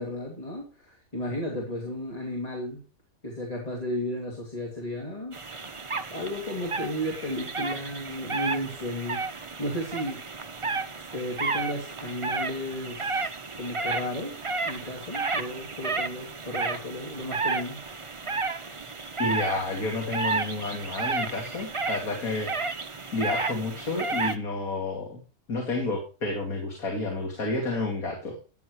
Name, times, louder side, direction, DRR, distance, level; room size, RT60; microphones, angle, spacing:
voice 1, 0.0-2.8 3.2-5.4 6.1-10.2 11.1-17.8, left 1 dB, 25° left, -1 dB, 2.7 m, -34 dB
sound 1, 5.3-24.3, right 3 dB, 25° right, 0.8 m, -32 dB
voice 2, 19.2-22.8 23.1-25.2 25.5-28.4, left 2 dB, 75° left, 1 dB, 3.0 m, -30 dB
13.0 x 10.5 x 3.2 m, 0.34 s
omnidirectional pair, 1.5 m